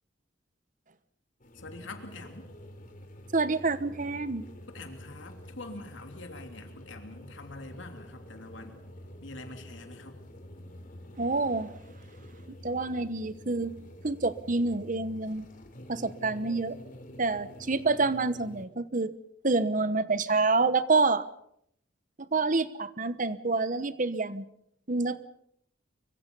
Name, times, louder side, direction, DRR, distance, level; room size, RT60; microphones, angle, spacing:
sound 1, 1.4-18.7, equal, 45° left, 3.4 m, -48 dB
voice 1, 1.6-2.5 4.7-8.8 9.2-10.2, left 2 dB, 75° left, 5 dB, 3.2 m, -45 dB
voice 2, 3.3-4.4 11.2-11.7 12.6-13.7 14.0-15.5 15.9-16.8 17.2-19.1 19.4-21.2 22.3-24.4 24.9-25.2, right 3 dB, 40° right, 14 dB, 1.1 m, -27 dB
24.0 x 23.5 x 5.5 m, 0.72 s
head